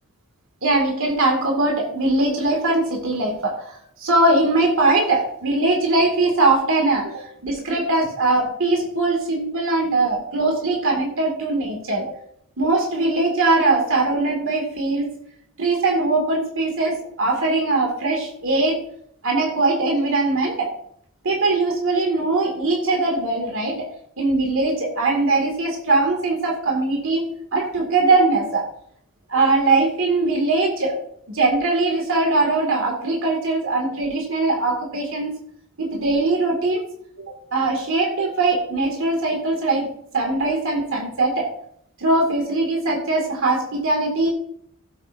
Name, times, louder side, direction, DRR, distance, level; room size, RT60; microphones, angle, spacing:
voice 1, 0.6-12.0 12.6-15.2 15.6-18.8 19.2-20.7 21.2-23.9 24.2-28.7 29.3-31.0 31.3-35.3 35.8-36.8 37.5-41.5 42.0-44.3, right 2 dB, 65° right, 1 dB, 2.3 m, -21 dB
16.0 x 8.0 x 2.7 m, 0.65 s
head